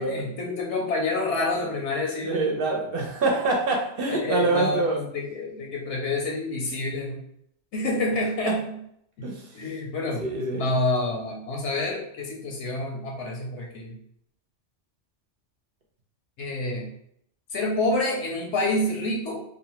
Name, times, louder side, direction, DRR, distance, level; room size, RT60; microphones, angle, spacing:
voice 1, 0.0-2.6 4.1-7.2 7.7-8.8 9.2-10.2 10.5-14.0 16.4-16.9 17.5-19.4, left 2 dB, 80° left, -1 dB, 0.9 m, -28 dB
voice 2, 2.2-5.0 8.5-8.6 9.2-9.5 10.2-10.7, right 3 dB, 60° right, 1 dB, 0.7 m, -25 dB
2.6 x 2.0 x 2.9 m, 0.71 s
omnidirectional pair, 1.2 m